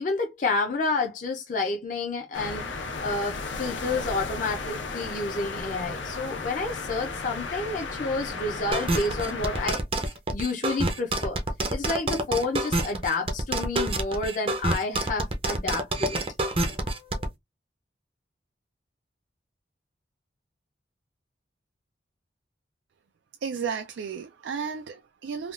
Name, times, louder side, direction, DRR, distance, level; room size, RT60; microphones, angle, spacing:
voice 1, 0.0-11.4 11.7-16.2 16.8-17.2, left 3 dB, 45° left, 0.5 m, -30 dB
sound 1, 2.3-9.8, left 4 dB, 90° left, 0.8 m, -34 dB
sound 2, 8.7-17.3, right 2 dB, 30° right, 0.6 m, -27 dB
voice 2, 23.4-25.5, right 6 dB, 75° right, 0.4 m, -33 dB
3.5 x 2.3 x 2.4 m
head